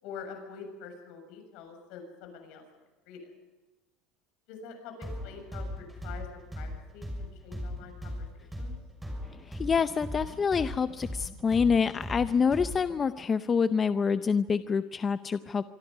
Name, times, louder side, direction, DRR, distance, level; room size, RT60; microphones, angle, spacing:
voice 1, 0.0-2.6 3.1-3.3 4.5-8.7, left 5 dB, 70° left, 5 dB, 7.1 m, -46 dB
sound 1, 5.0-12.9, equal, 5° right, 6.2 m, -38 dB
voice 2, 9.3-15.6, left 6 dB, 25° left, 11 dB, 0.6 m, -27 dB
25.0 x 24.5 x 5.6 m, 1.2 s
cardioid pair, 130°, 0 cm